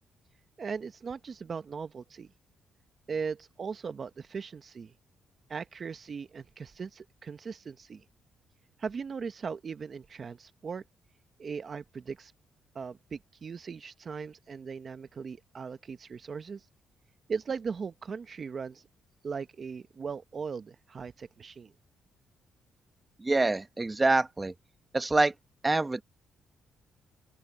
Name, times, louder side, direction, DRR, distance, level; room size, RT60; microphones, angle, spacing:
voice 1, 0.6-2.3 3.1-4.9 5.5-8.0 8.8-10.8 11.4-12.3 12.7-16.7 17.3-18.8 19.2-21.7, right 5 dB, 45° right, 1.0 m, -38 dB
voice 2, 23.2-24.5 24.9-25.3 25.6-26.0, right 2 dB, 20° right, 1.2 m, -25 dB
open air
cardioid pair, 90°, 0 cm